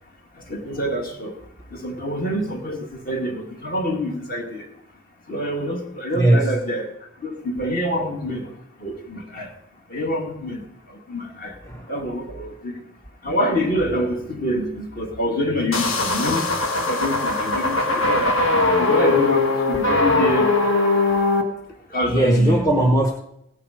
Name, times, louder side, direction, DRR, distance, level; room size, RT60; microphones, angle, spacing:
voice 1, 0.5-1.4 1.7-4.7 5.3-6.9 7.2-8.5 8.8-9.5 9.9-10.6 10.9-11.6 11.9-12.8 13.2-16.5 16.8-18.4 18.8-20.5 21.9-22.6, equal, 40° left, 2 dB, 2.2 m, -26 dB
voice 2, 6.2-6.5 11.7-11.9 22.1-23.1, right 1 dB, 15° left, 1 dB, 1.0 m, -18 dB
sound 1, 15.7-21.4, left 3 dB, 60° left, 1.7 m, -20 dB
16.5 x 9.8 x 5.1 m, 0.78 s
head